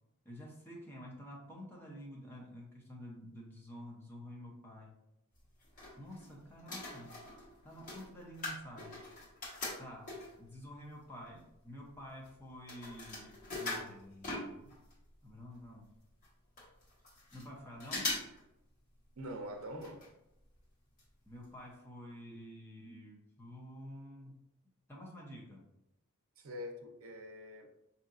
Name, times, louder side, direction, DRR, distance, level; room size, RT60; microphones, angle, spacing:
voice 1, 0.2-5.0 6.0-7.2 7.6-9.0 9.8-14.8 15.2-15.9 17.3-18.2 21.3-24.5 24.9-25.6, equal, 10° left, -3 dB, 0.7 m, -50 dB
sound 1, 5.4-6.3 6.6-10.5 11.1-11.2 11.4-15.0 15.3-15.4 15.5-15.6 16.2-16.3 16.6-17.5 17.8-18.4 18.7-18.8 19.8-20.1 20.4-20.5 21.0-21.1 21.4-21.5, left 2 dB, 35° left, 1.2 m, -42 dB
voice 2, 19.2-20.0 26.4-27.7, equal, 70° right, 3 dB, 0.6 m, -44 dB
5.0 x 2.8 x 2.5 m, 0.86 s
head